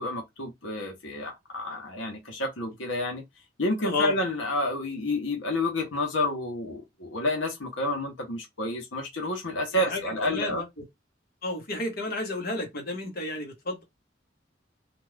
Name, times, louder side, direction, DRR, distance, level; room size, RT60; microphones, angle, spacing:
voice 1, 0.0-3.2 3.6-10.7, left 1 dB, 80° left, 1.0 m, -29 dB
voice 2, 3.8-4.1 9.7-10.6 11.4-13.8, left 2 dB, 55° left, 1.3 m, -32 dB
2.6 x 2.4 x 3.3 m
head